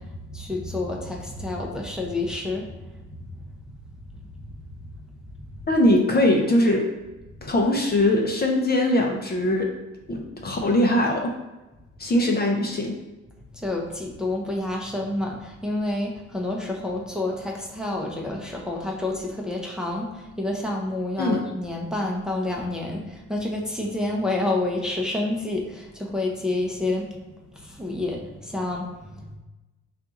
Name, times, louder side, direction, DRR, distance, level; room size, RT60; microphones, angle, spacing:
voice 1, 0.0-3.5 4.3-5.1 13.5-29.4, left 2 dB, ahead, -1 dB, 0.7 m, -29 dB
voice 2, 5.7-6.8 7.4-9.7 10.1-11.3 12.0-12.9 21.2-21.4, left 1 dB, 30° left, 1 dB, 0.7 m, -21 dB
4.4 x 2.5 x 3.7 m, 1.1 s
cardioid pair, 90°, 30 cm